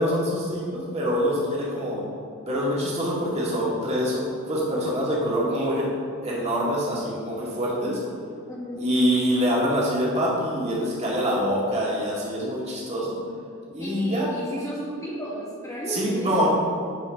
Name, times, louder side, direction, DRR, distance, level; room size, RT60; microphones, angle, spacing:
voice 1, 0.0-2.0 2.5-5.9 6.2-8.0 8.7-13.2 13.7-14.3 15.9-16.5, equal, 30° right, -6 dB, 1.8 m, -25 dB
voice 2, 8.5-8.9 13.8-16.5, equal, 15° left, -5 dB, 1.4 m, -33 dB
9.3 x 6.1 x 3.6 m, 2.4 s
head